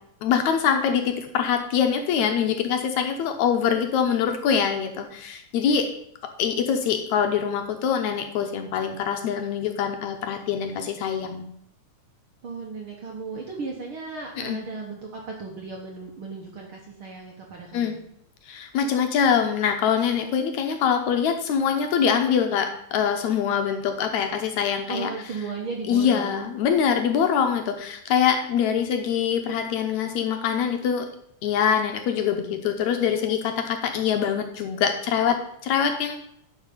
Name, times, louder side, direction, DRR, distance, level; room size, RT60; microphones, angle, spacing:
voice 1, 0.2-5.9 6.4-11.5 14.4-14.6 17.7-18.0 18.4-25.1 25.9-31.1 31.4-36.2, left 7 dB, 75° left, 5 dB, 1.9 m, -24 dB
voice 2, 12.4-18.0 24.9-26.5, right 4 dB, 60° right, 0 dB, 1.4 m, -35 dB
10.5 x 4.9 x 5.4 m, 0.73 s
omnidirectional pair, 3.7 m